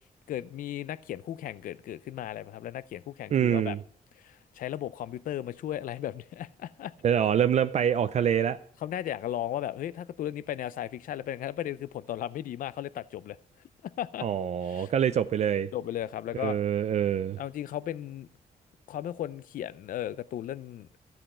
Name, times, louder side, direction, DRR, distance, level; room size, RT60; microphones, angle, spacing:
voice 1, 0.3-3.8 4.2-6.9 8.8-13.4 13.8-14.3 14.6-14.9 15.7-16.6 17.4-18.3 18.9-21.0, left 11 dB, 70° left, 0.4 m, -35 dB
voice 2, 3.3-3.8 7.0-8.6 14.2-15.7 16.4-17.4, right 9 dB, 50° right, 0.4 m, -25 dB
13.0 x 7.8 x 4.2 m
cardioid pair, 125°, 15 cm